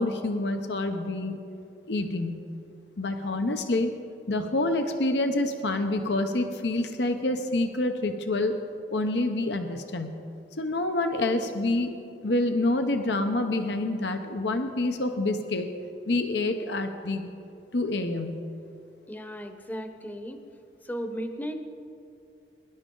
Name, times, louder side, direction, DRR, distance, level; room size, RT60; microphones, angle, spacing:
voice 1, 0.0-1.4 1.9-2.4 3.0-3.9 4.3-8.6 8.9-10.2 10.6-11.9 12.2-15.7 16.1-17.3 17.7-18.4, left 2 dB, 70° left, 6 dB, 0.8 m, -27 dB
voice 2, 19.1-20.4 20.8-21.5, equal, 10° left, 7 dB, 0.9 m, -35 dB
21.5 x 11.0 x 3.8 m, 2.6 s
head